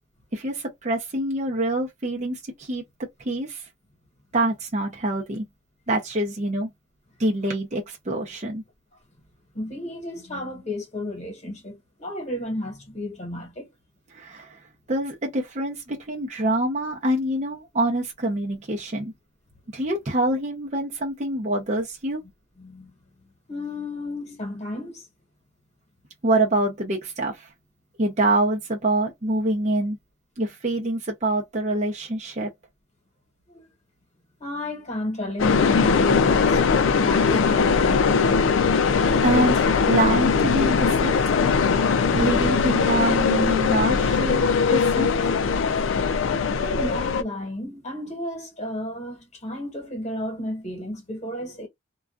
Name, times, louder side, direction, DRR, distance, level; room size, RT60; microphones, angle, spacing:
voice 1, 0.3-3.7 4.3-5.5 5.9-6.7 7.2-8.6 14.1-14.6 14.9-19.1 19.7-22.2 26.2-27.5 28.0-30.0 30.4-32.5 39.2-41.3 42.1-45.3, right 1 dB, 35° right, 0.6 m, -26 dB
voice 2, 9.5-13.7 22.6-22.9 23.5-25.1 33.5-33.7 34.4-36.6 37.0-38.1 41.8-41.9 46.6-51.7, left 1 dB, 35° left, 1.2 m, -32 dB
sound 1, 35.4-47.2, left 5 dB, 75° left, 0.4 m, -20 dB
2.4 x 2.3 x 2.3 m
head